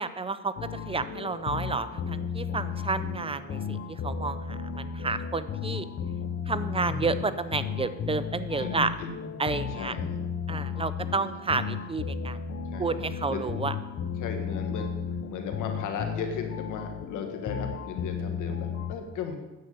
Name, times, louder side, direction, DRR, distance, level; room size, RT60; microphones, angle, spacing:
voice 1, 0.0-5.9 6.5-8.9 9.4-9.9 10.5-12.4 12.8-13.7, right 4 dB, 20° right, 12 dB, 0.6 m, -31 dB
sound 1, 0.6-19.0, left 6 dB, 50° left, 0.9 m, -34 dB
voice 2, 6.8-7.2 8.6-9.3 9.7-10.2 12.7-12.9 13.3-13.7 14.2-19.4, left 5 dB, 90° left, 5 dB, 1.6 m, -36 dB
9.5 x 6.9 x 6.7 m, 1.1 s
cardioid pair, 90°, 30 cm